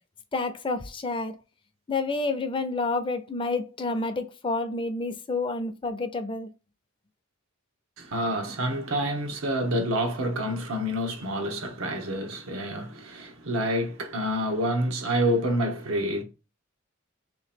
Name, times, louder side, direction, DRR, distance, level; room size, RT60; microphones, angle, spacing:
voice 1, 0.3-1.4 1.9-6.5, left 3 dB, 25° left, 0.5 m, -29 dB
voice 2, 8.0-16.2, equal, 85° right, 0.9 m, -28 dB
3.3 x 2.9 x 4.2 m
head